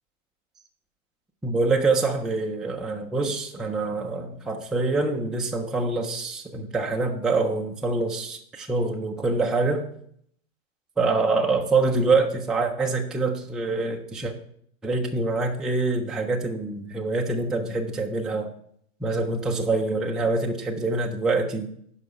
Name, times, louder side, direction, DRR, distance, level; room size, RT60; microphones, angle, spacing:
voice 1, 1.4-9.9 11.0-14.3 14.8-18.5 19.0-21.7, right 3 dB, ahead, 1 dB, 0.3 m, -25 dB
9.2 x 5.6 x 5.0 m, 0.68 s
hypercardioid pair, 130°, 38 cm